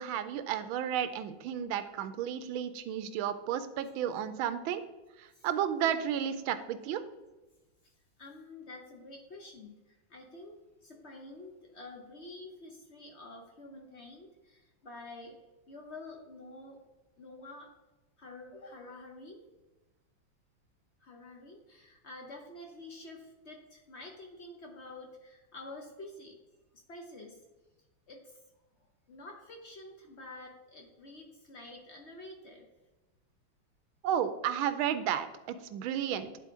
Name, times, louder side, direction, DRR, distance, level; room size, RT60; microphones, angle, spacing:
voice 1, 0.0-4.8 5.2-7.0 34.0-36.3, right 9 dB, 85° right, 11 dB, 1.4 m, -32 dB
voice 2, 8.2-15.4 15.7-16.9 17.2-17.7 18.2-19.4 21.0-26.4 26.7-27.4 28.1-28.4 29.1-32.7, left 2 dB, 60° left, 2 dB, 0.7 m, -48 dB
9.9 x 4.2 x 3.6 m, 1.1 s
omnidirectional pair, 2.2 m